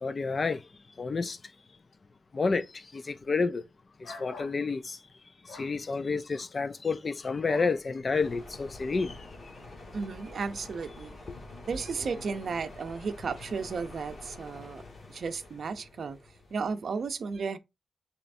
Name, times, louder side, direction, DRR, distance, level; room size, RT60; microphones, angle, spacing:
voice 1, 0.0-0.6 1.0-1.4 2.3-3.6 4.2-5.0 5.5-9.2, left 4 dB, 40° left, 0.4 m, -30 dB
sound 1, 4.0-4.6 5.5-5.7 7.5-7.8, left 3 dB, 85° left, 1.2 m, -44 dB
sound 2, 8.1-16.7, left 2 dB, 60° left, 2.0 m, -47 dB
voice 2, 9.9-11.1 11.7-14.8 15.1-16.2 16.5-17.6, right 5 dB, 65° right, 0.5 m, -34 dB
6.6 x 3.1 x 2.6 m
wide cardioid pair, 130°, 0 cm